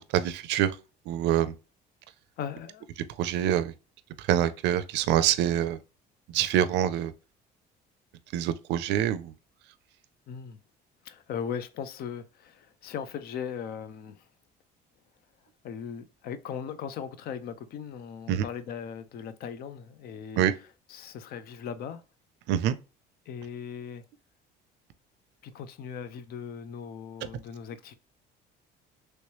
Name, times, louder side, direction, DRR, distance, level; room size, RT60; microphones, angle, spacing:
voice 1, 0.1-0.7 1.1-1.5 3.2-3.7 4.2-5.8 6.3-7.1 8.3-9.3 18.3-18.4 20.4-20.6 22.5-22.8, right 11 dB, 70° right, 0.5 m, -25 dB
voice 2, 2.4-2.9 10.3-10.6 11.0-14.3 15.6-20.4 20.9-22.0 23.3-24.0 25.4-27.9, left 7 dB, 55° left, 0.5 m, -38 dB
3.1 x 3.1 x 2.9 m
cardioid pair, 145°, 19 cm